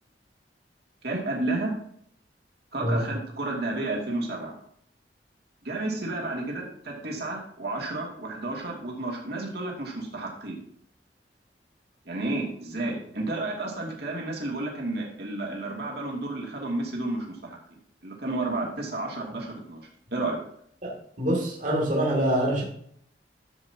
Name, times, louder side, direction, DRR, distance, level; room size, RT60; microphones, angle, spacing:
voice 1, 1.0-1.7 2.7-4.5 5.6-10.6 12.1-17.6 18.0-19.8 20.1-20.4, right 2 dB, 65° right, -1 dB, 2.4 m, -31 dB
voice 2, 20.8-22.6, right 1 dB, 50° right, -2 dB, 2.6 m, -25 dB
12.5 x 7.6 x 2.9 m, 0.65 s
head